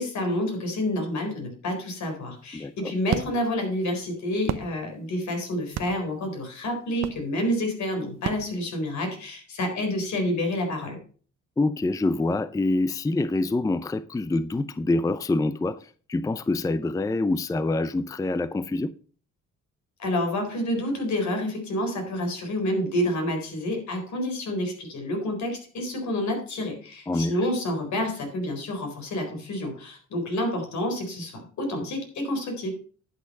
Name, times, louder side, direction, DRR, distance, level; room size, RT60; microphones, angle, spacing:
voice 1, 0.0-11.0 20.0-32.7, left 1 dB, 70° left, 4.2 m, -28 dB
sound 1, 2.4-9.3, right 9 dB, 60° right, 0.9 m, -37 dB
voice 2, 2.5-2.9 11.6-18.9 27.1-27.4, left 2 dB, 10° left, 0.5 m, -26 dB
11.0 x 6.3 x 5.4 m
cardioid pair, 90°, 30 cm